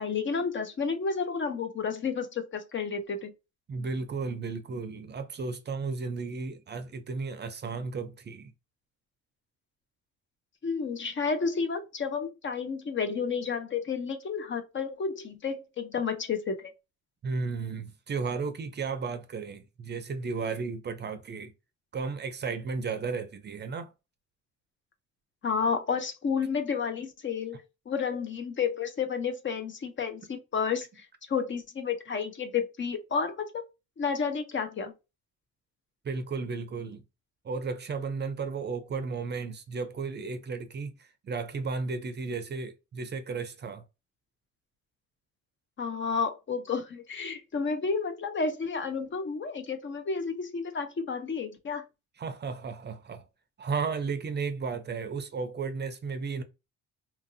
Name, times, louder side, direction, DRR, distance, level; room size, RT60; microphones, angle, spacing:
voice 1, 0.0-3.3 10.6-16.7 25.4-27.6 27.9-33.6 34.0-34.9 45.8-51.8, left 5 dB, 40° left, 0.6 m, -31 dB
voice 2, 3.7-8.5 17.2-21.5 21.9-23.9 36.0-37.0 37.4-43.8 52.2-53.2 53.6-56.4, right 4 dB, 35° right, 0.5 m, -34 dB
2.9 x 2.5 x 2.5 m
cardioid pair, 90°, 30 cm